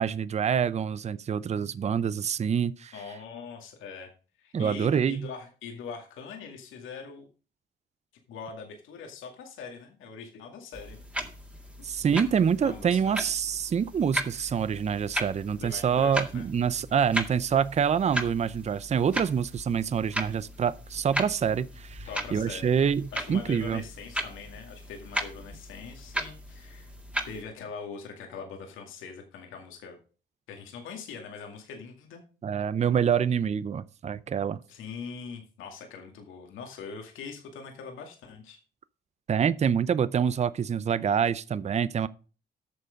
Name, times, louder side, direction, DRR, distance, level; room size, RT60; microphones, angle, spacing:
voice 1, 0.0-2.9 4.5-5.3 11.8-23.8 32.4-34.6 39.3-42.1, right 7 dB, 35° right, 0.5 m, -26 dB
voice 2, 2.9-4.1 4.4-7.3 8.3-11.0 12.6-13.1 15.6-16.5 22.0-22.7 23.1-26.9 27.2-30.0 30.5-32.2 34.7-38.6, left 5 dB, 85° left, 2.2 m, -42 dB
sound 1, 10.7-27.4, equal, 5° right, 1.9 m, -37 dB
9.3 x 6.7 x 5.1 m
cardioid pair, 90°, 20 cm